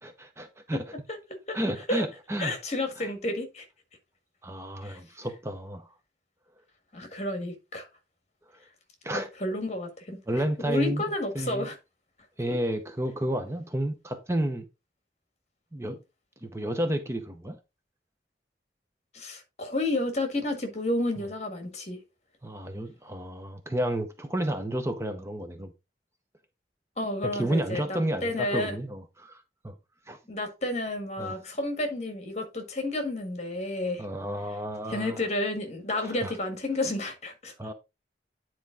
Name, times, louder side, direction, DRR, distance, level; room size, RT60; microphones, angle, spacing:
voice 1, 0.0-0.9 1.5-2.5 3.0-3.1 4.4-5.9 9.0-9.3 10.3-11.0 11.3-11.7 12.4-14.7 15.7-16.0 16.4-17.6 22.4-25.7 27.2-29.7 30.1-30.2 31.2-31.4 34.0-35.2 36.0-36.4 37.6-37.7, right 1 dB, 15° right, 0.7 m, -31 dB
voice 2, 2.4-3.6 4.8-5.0 6.9-7.9 9.1-10.2 10.6-11.8 19.1-22.0 27.0-28.8 30.3-34.0 34.9-37.5, left 1 dB, 40° left, 1.7 m, -31 dB
9.5 x 4.5 x 3.8 m
head